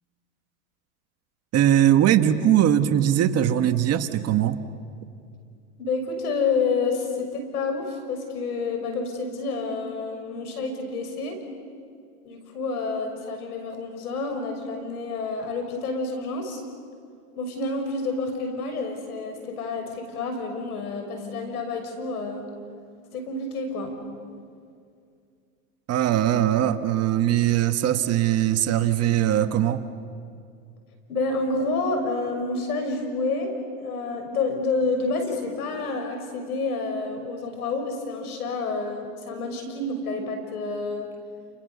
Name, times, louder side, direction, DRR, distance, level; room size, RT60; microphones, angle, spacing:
voice 1, 1.5-4.6 25.9-29.8, right 11 dB, 35° right, 9 dB, 1.5 m, -21 dB
voice 2, 5.8-11.4 12.2-16.6 17.4-22.4 23.1-24.0 31.1-41.1, left 3 dB, 90° left, 5 dB, 6.2 m, -29 dB
29.5 x 29.0 x 7.1 m, 2.3 s
hypercardioid pair, 115°, 44 cm